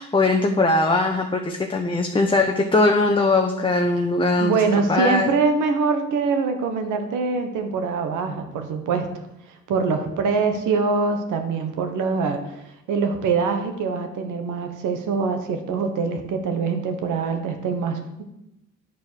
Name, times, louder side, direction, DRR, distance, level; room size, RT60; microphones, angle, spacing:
voice 1, 0.0-4.6 4.9-5.3, left 2 dB, 15° left, 2 dB, 0.8 m, -20 dB
voice 2, 4.4-9.1 9.7-12.6 12.9-18.2, right 4 dB, 85° right, 6 dB, 1.4 m, -24 dB
9.2 x 4.6 x 6.6 m, 0.88 s
cardioid pair, 90°, 30 cm